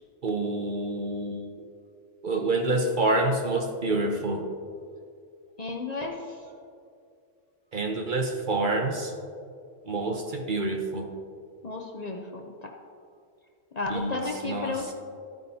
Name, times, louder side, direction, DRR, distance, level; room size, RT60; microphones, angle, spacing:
voice 1, 0.2-1.5 2.2-4.4 7.7-9.1 9.9-11.1 13.9-14.8, right 2 dB, 50° right, 3 dB, 0.7 m, -27 dB
voice 2, 5.6-6.1 11.6-12.7 13.7-14.9, left 3 dB, 40° left, 1 dB, 0.7 m, -33 dB
13.5 x 9.2 x 2.7 m, 2.3 s
omnidirectional pair, 1.3 m